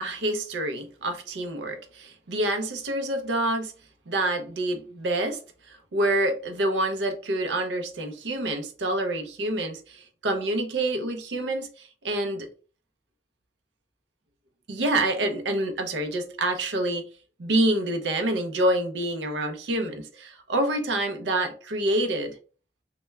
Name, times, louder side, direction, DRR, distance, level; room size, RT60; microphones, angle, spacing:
voice 1, 0.0-3.7 4.1-5.4 5.7-12.5 14.7-17.0 17.4-22.3, right 1 dB, 80° right, 0.5 m, -27 dB
2.2 x 2.1 x 3.0 m
head